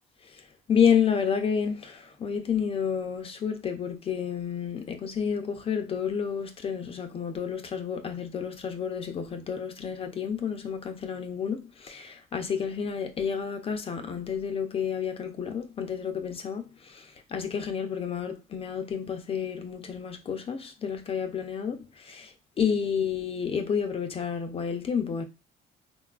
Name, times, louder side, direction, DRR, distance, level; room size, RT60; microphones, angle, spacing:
voice 1, 0.7-16.6 16.9-17.0 17.3-22.3 22.6-25.2, left 7 dB, 35° left, 0.4 m, -30 dB
3.9 x 2.3 x 2.3 m
cardioid pair, 110°, 17 cm